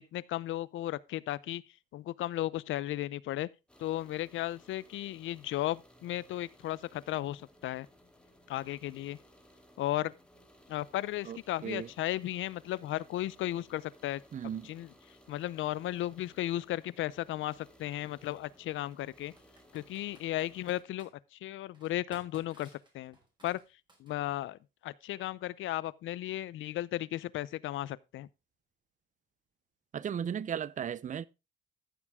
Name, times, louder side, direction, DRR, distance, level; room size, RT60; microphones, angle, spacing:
voice 1, 0.0-1.6 1.9-3.5 3.8-7.9 8.5-9.2 9.8-10.1 10.7-14.2 14.6-14.9 15.3-19.3 19.7-22.7 22.9-23.2 23.4-23.6 24.0-28.3, left 14 dB, 80° left, 0.6 m, -35 dB
sound 1, 3.7-20.8, equal, 5° left, 2.5 m, -61 dB
voice 2, 11.2-11.9 14.3-14.7 29.9-31.3, right 8 dB, 40° right, 0.6 m, -36 dB
Computer keyboard, 16.6-16.7 18.2-18.5 19.4-21.1 21.7-24.4, right 2 dB, 20° right, 5.3 m, -60 dB
14.0 x 7.3 x 3.5 m
cardioid pair, 90°, 20 cm